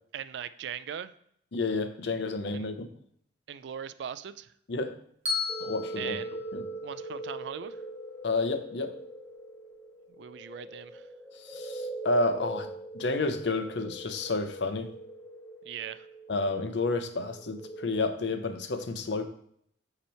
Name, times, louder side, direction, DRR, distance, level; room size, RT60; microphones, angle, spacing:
voice 1, 0.1-1.1 2.5-2.7 3.5-4.5 6.0-6.4 6.8-7.8 10.2-11.1 15.6-16.1, right 8 dB, 70° right, 14 dB, 0.3 m, -39 dB
voice 2, 1.5-2.9 4.7-5.0 5.6-6.2 6.5-6.6 8.2-9.0 11.4-12.7 12.9-14.9 16.3-19.3, left 3 dB, 70° left, 8 dB, 0.6 m, -30 dB
Bell, 5.3-7.4, left 5 dB, 35° right, 1.3 m, -36 dB
sound 1, 5.5-18.1, right 1 dB, 15° left, 0.6 m, -41 dB
8.1 x 3.0 x 4.4 m, 0.67 s
head